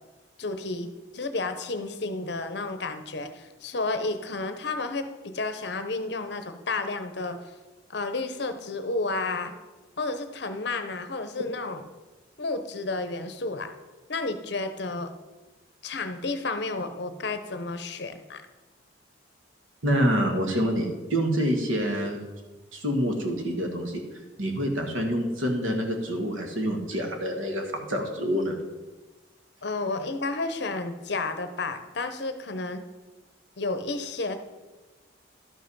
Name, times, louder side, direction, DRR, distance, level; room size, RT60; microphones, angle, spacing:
voice 1, 0.4-7.4 7.9-9.5 10.0-11.8 12.4-13.7 14.1-15.1 15.8-18.4 29.6-32.8 33.6-34.4, left 3 dB, 55° left, 8 dB, 0.8 m, -31 dB
voice 2, 19.8-22.2 22.7-24.0 24.4-28.6, equal, 85° right, 3 dB, 1.6 m, -27 dB
12.0 x 5.6 x 5.4 m, 1.2 s
head